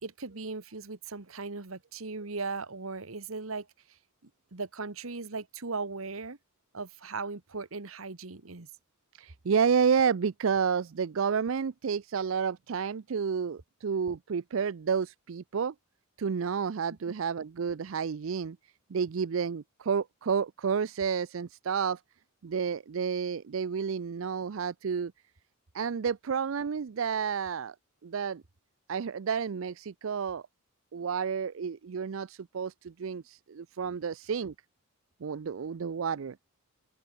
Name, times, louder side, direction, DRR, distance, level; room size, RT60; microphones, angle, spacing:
voice 1, 0.0-3.7 4.2-6.4 6.7-8.7, right 4 dB, 85° right, 1.5 m, -38 dB
voice 2, 9.2-15.7 16.2-18.6 18.9-22.0 22.4-25.1 25.7-27.7 28.0-28.4 28.9-30.4 30.9-34.5 35.2-36.4, right 6 dB, 70° right, 0.5 m, -30 dB
open air
head